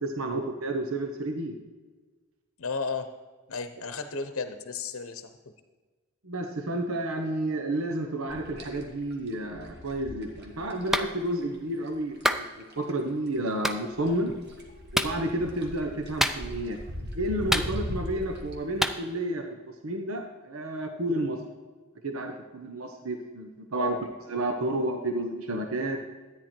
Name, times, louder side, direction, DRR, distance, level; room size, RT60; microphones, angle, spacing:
voice 1, 0.0-1.5 6.2-14.3 14.9-16.8 17.1-19.5 19.8-21.4 22.0-24.0 24.3-26.0, right 1 dB, 75° right, 4 dB, 1.1 m, -31 dB
voice 2, 2.6-3.1 3.5-5.3 23.8-24.0, left 4 dB, 70° left, 9 dB, 0.8 m, -33 dB
sound 1, 8.3-13.1 13.4-18.5, equal, 50° right, 1.7 m, -40 dB
Clapping, 10.9-11.1 12.2-12.5 13.6-13.8 14.9-15.2 16.2-16.7 17.5-18.1 18.8-19.0, equal, ahead, 0.4 m, -26 dB
13.0 x 9.4 x 4.5 m, 1.3 s
head